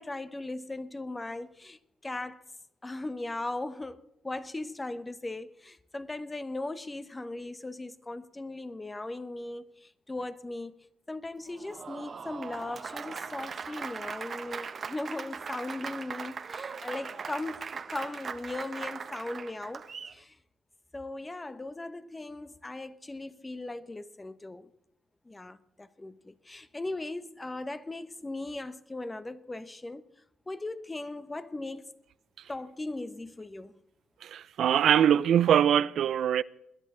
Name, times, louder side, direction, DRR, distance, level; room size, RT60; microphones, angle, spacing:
voice 1, 0.0-2.4 2.8-10.7 11.1-20.4 20.9-24.7 25.2-30.0 30.5-32.0 32.5-33.8, left 2 dB, 15° left, 0.9 m, -38 dB
Applause, 11.5-20.2, right 5 dB, 45° right, 0.9 m, -40 dB
voice 2, 34.2-36.4, right 9 dB, 70° right, 0.4 m, -23 dB
21.0 x 11.0 x 3.8 m
cardioid pair, 90°, 0 cm